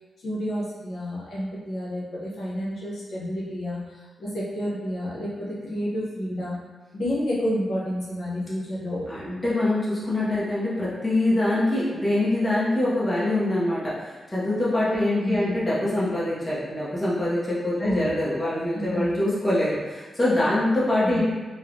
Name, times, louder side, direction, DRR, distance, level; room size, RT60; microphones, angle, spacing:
voice 1, 0.2-6.5 6.9-9.1 14.9-15.6 17.8-18.1 18.7-19.1 21.0-21.2, equal, 70° left, -7 dB, 0.7 m, -30 dB
voice 2, 9.1-21.2, left 1 dB, 15° left, -8 dB, 0.5 m, -24 dB
3.1 x 2.0 x 2.4 m, 1.3 s
wide cardioid pair, 180°, 0 cm